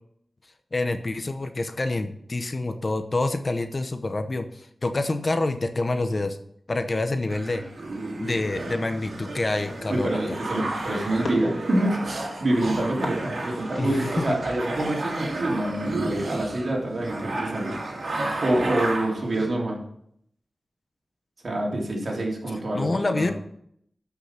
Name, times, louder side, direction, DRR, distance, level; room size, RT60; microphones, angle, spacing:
voice 1, 0.7-6.4 6.7-7.6 8.2-10.2 13.8-14.4 22.7-23.3, left 2 dB, 40° left, 8 dB, 0.8 m, -27 dB
sound 1, 7.3-19.5, right 2 dB, 85° right, 2.7 m, -32 dB
Fireworks, 9.6-14.8, left 2 dB, 60° left, 2.2 m, -40 dB
voice 2, 9.9-17.8 18.4-19.8 21.4-23.3, right 1 dB, 60° right, -2 dB, 3.2 m, -26 dB
12.5 x 5.9 x 5.8 m, 0.69 s
wide cardioid pair, 110°, 0 cm